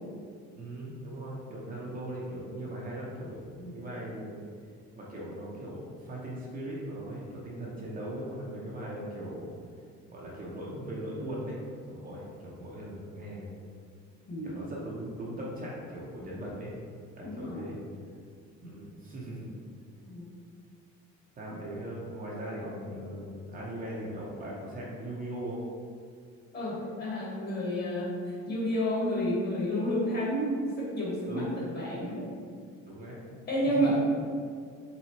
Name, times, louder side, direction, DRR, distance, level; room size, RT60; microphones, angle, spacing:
voice 1, 0.5-4.4 5.0-9.5 10.1-13.5 14.4-16.7 17.1-17.8 18.6-19.5 21.4-25.6 31.3-31.5 32.8-33.2 33.7-34.0, right 1 dB, 30° right, -5 dB, 0.7 m, -39 dB
voice 2, 14.3-14.6 17.2-17.6 20.0-20.2 26.5-32.3 33.5-34.0, equal, 35° left, -6 dB, 1.2 m, -30 dB
4.2 x 3.5 x 2.9 m, 2.2 s
cardioid pair, 160°, 30 cm